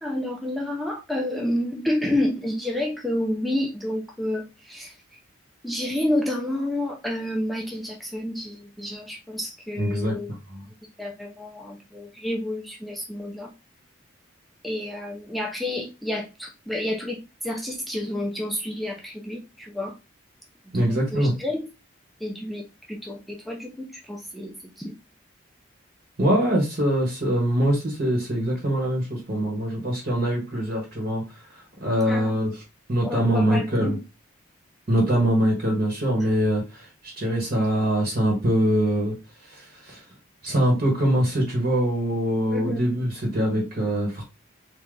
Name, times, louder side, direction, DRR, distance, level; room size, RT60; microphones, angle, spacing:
voice 1, 0.0-4.9 5.6-10.3 10.7-13.5 14.6-20.0 20.8-21.6 22.2-24.9 32.1-32.4 33.0-34.0 42.5-42.8, left 1 dB, ahead, 0.5 m, -29 dB
voice 2, 9.8-10.6 20.7-21.3 26.2-32.6 32.9-34.0 34.9-39.1 39.4-40.0 40.4-44.2, equal, 45° right, 1.2 m, -23 dB
3.3 x 2.8 x 3.7 m
head